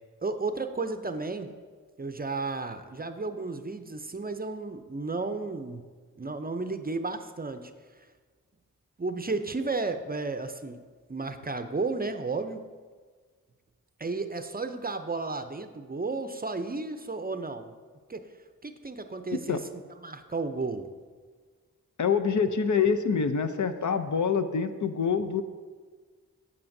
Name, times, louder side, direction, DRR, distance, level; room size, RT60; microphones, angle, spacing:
voice 1, 0.2-1.5 2.0-5.9 6.2-7.7 8.0-8.1 9.0-10.8 11.1-12.6 14.0-17.7 18.1-18.3 18.6-19.6 20.0-20.9, right 3 dB, 25° right, 9 dB, 0.5 m, -33 dB
voice 2, 22.0-25.4, left 6 dB, 60° left, 7 dB, 0.6 m, -26 dB
9.1 x 7.8 x 2.7 m, 1.5 s
cardioid pair, 50°, 34 cm